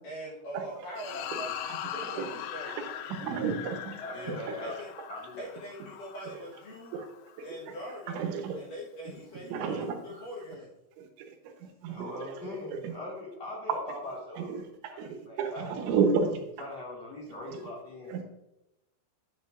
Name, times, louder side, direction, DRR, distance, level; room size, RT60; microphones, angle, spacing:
voice 1, 0.0-1.5 1.8-2.7 4.1-4.9 5.4-7.0 7.4-8.2 8.6-10.7, equal, 60° left, -4 dB, 2.5 m, -42 dB
sound 1, 1.0-7.5, left 10 dB, 80° left, 2.7 m, -41 dB
voice 2, 3.1-4.0 6.9-7.1 7.4-7.5 8.1-8.6 9.5-10.0 11.0-11.1 11.6-12.1 12.8-12.9 14.4-14.7 15.0-16.4 18.1-18.2, right 5 dB, 85° right, 4 dB, 3.4 m, -31 dB
voice 3, 4.0-4.8 5.1-5.4 10.1-10.3 11.9-15.8 16.6-18.2, left 1 dB, 45° left, -5 dB, 2.7 m, -41 dB
10.0 x 7.8 x 2.5 m, 0.89 s
omnidirectional pair, 5.2 m